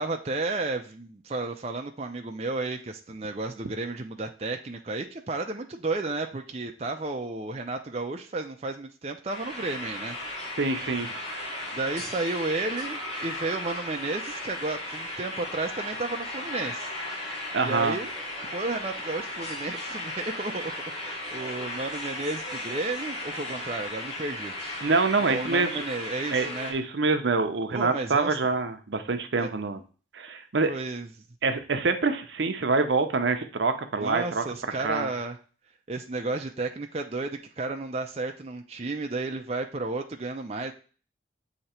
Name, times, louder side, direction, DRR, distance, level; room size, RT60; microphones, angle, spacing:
voice 1, 0.0-10.2 11.7-16.9 17.6-18.1 18.5-20.7 21.0-24.5 25.3-26.7 27.7-28.4 29.4-29.5 30.7-31.1 33.9-35.4 35.9-40.7, right 3 dB, 35° right, 3 dB, 0.5 m, -32 dB
sound 1, 9.3-26.7, left 1 dB, 35° left, 3.0 m, -36 dB
voice 2, 10.6-11.1 17.5-18.0 24.8-25.8 26.3-29.8 30.1-30.7 31.4-34.4 34.8-35.1, right 3 dB, 75° right, 8 dB, 0.7 m, -26 dB
7.9 x 2.9 x 4.3 m, 0.38 s
head